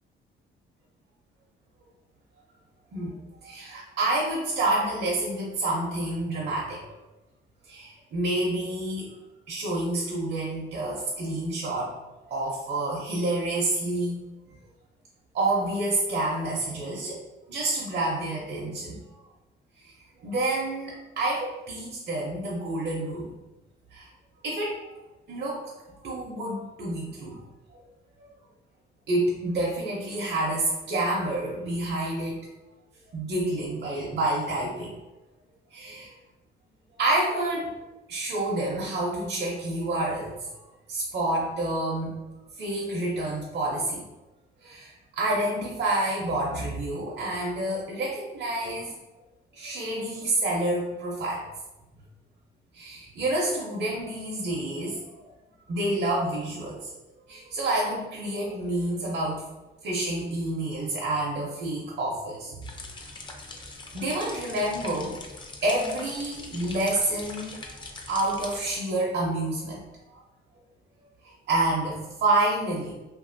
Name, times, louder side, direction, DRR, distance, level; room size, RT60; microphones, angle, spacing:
voice 1, 3.4-6.9 7.7-9.2 9.5-11.9 12.3-14.2 15.3-17.2 17.5-19.0 20.2-23.3 23.9-24.1 24.4-24.9 25.3-25.7 26.0-27.4 27.7-27.8 29.1-32.4 33.1-35.0 35.7-36.1 37.0-37.7 38.1-40.3 40.9-42.2 42.6-44.0 44.6-48.9 49.5-51.4 52.7-55.2 55.7-56.9 57.3-59.5 59.8-62.6 63.5-63.6 63.9-65.2 65.6-67.7 68.1-69.8 70.1-70.2 71.5-72.9, right 2 dB, 55° right, -4 dB, 0.7 m, -28 dB
sound 1, 62.6-68.8, left 3 dB, 25° left, 0.4 m, -42 dB
2.7 x 2.6 x 2.6 m, 1.0 s
cardioid pair, 90°, 20 cm